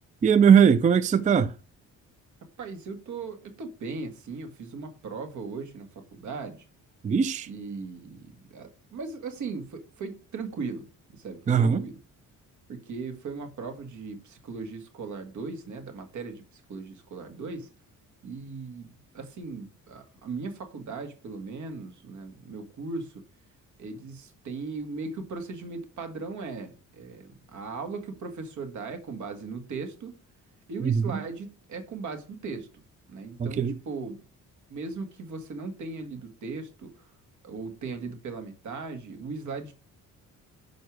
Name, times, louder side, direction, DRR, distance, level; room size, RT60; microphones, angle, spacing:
voice 1, 0.2-1.5 7.0-7.5 11.5-11.8 30.8-31.2 33.4-33.8, right 7 dB, 25° right, 0.4 m, -20 dB
voice 2, 2.6-6.7 7.5-10.9 11.1-12.0 12.7-17.7 18.2-23.2 23.8-30.1 30.7-32.8 33.1-34.2 34.7-37.1 37.4-39.7, right 4 dB, 65° right, 2.0 m, -38 dB
6.6 x 5.2 x 6.1 m
cardioid pair, 130°, 32 cm